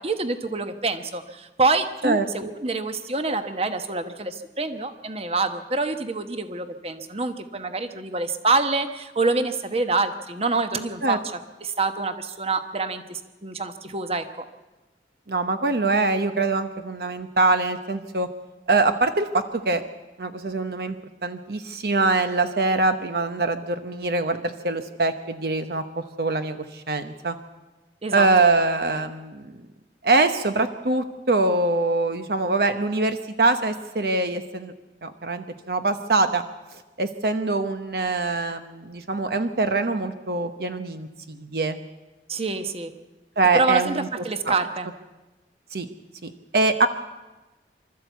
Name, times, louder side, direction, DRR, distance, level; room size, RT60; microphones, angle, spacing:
voice 1, 0.0-11.2 11.6-14.5 28.0-28.5 42.3-42.9 43.5-44.9, right 3 dB, 35° right, 9 dB, 1.1 m, -26 dB
voice 2, 15.3-18.3 18.7-19.8 20.2-20.9 21.2-27.4 28.1-29.4 30.0-34.7 35.0-36.4 37.0-41.8 43.4-44.1 44.5-44.6 45.7-45.9 46.2-46.9, right 3 dB, 60° right, 8 dB, 0.9 m, -23 dB
25.0 x 13.5 x 8.2 m, 1.1 s
head